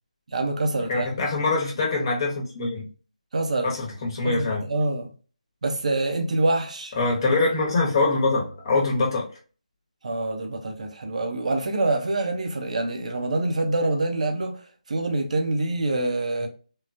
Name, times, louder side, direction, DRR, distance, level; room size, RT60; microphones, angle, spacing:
voice 1, 0.3-1.1 3.3-3.7 4.2-5.1 5.6-6.9 10.0-14.6 14.9-16.5, right 2 dB, 60° right, 0.8 m, -26 dB
voice 2, 0.9-2.9 3.6-4.6 7.0-9.3, left 3 dB, 35° left, 1.0 m, -24 dB
3.6 x 2.3 x 2.6 m
figure-of-eight pair, 155°, 4 cm